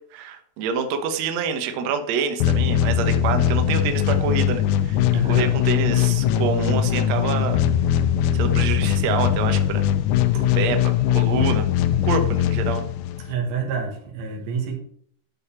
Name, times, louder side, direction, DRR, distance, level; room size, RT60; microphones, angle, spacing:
voice 1, 0.1-5.0 5.2-7.6 8.3-9.8 10.3-11.6 12.0-12.9, right 6 dB, 70° right, 6 dB, 1.7 m, -27 dB
sound 1, 2.4-13.3, left 10 dB, 90° left, 1.8 m, -21 dB
voice 2, 5.1-5.6 8.3-8.4 10.5-10.6 13.3-14.8, right 4 dB, 90° right, 0 dB, 3.7 m, -28 dB
12.0 x 4.3 x 5.7 m, 0.64 s
omnidirectional pair, 4.2 m